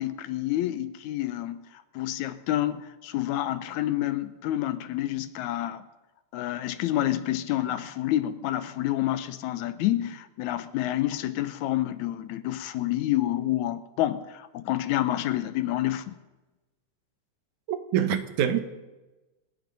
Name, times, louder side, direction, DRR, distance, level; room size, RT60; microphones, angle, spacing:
voice 1, 0.0-5.8 6.3-16.2, left 14 dB, 80° left, 2.1 m, -28 dB
voice 2, 17.7-18.6, right 10 dB, 80° right, 2.5 m, -25 dB
26.0 x 9.1 x 5.4 m
omnidirectional pair, 3.5 m